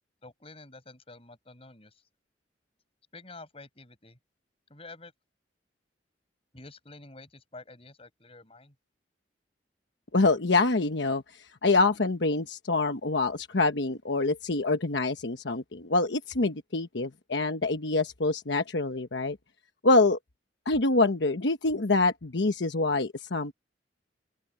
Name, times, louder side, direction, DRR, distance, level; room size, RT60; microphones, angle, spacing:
voice 1, 0.2-2.0 3.1-4.2 4.7-5.1 6.5-8.7, left 3 dB, 35° left, 7.5 m, -49 dB
voice 2, 10.1-11.2 11.6-19.4 19.8-20.2 20.7-23.5, left 3 dB, 75° left, 1.1 m, -25 dB
open air
head